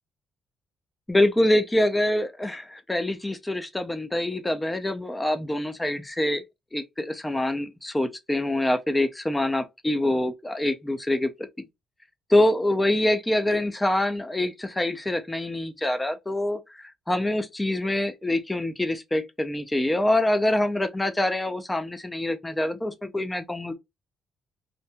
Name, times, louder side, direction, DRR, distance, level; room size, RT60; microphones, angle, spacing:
voice 1, 1.1-6.4 6.7-11.3 12.3-23.7, left 1 dB, 15° left, 0.5 m, -25 dB
2.7 x 2.6 x 2.2 m
cardioid pair, 90°, 0 cm